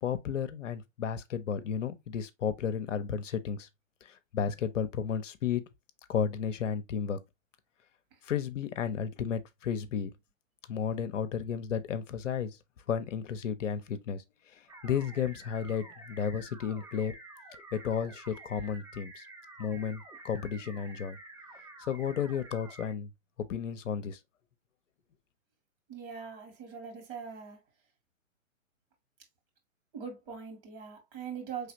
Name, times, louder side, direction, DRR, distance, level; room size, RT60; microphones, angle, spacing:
voice 1, 0.0-3.7 4.0-5.7 6.1-7.2 8.2-10.1 10.7-12.6 12.9-17.1 17.7-19.3 19.6-21.2 21.8-23.1 23.4-24.2, left 7 dB, 65° left, 0.7 m, -33 dB
sound 1, 14.7-22.9, right 2 dB, 5° right, 0.8 m, -50 dB
voice 2, 25.9-27.6 29.9-31.7, right 6 dB, 40° right, 2.1 m, -42 dB
4.8 x 3.3 x 2.8 m
figure-of-eight pair, 120°, 41 cm